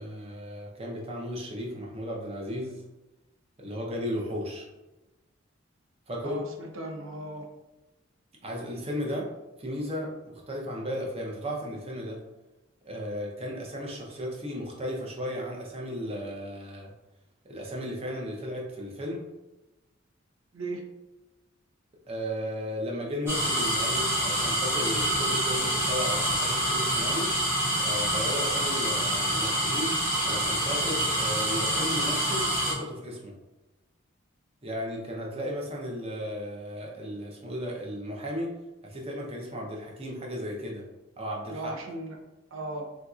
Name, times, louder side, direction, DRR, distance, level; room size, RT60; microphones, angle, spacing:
voice 1, 0.0-2.9 3.6-4.7 6.1-6.4 8.4-9.3 9.6-12.2 12.9-16.9 17.4-19.3 22.1-27.3 27.8-33.3 34.6-40.8 41.2-41.7, equal, 30° right, -2 dB, 0.7 m, -35 dB
voice 2, 6.2-7.5 20.5-20.8 41.5-42.2 42.5-42.9, right 2 dB, 80° right, 2 dB, 0.6 m, -37 dB
sound 1, 23.3-32.7, right 1 dB, 10° right, 1.3 m, -27 dB
3.7 x 2.8 x 2.4 m, 1.1 s
head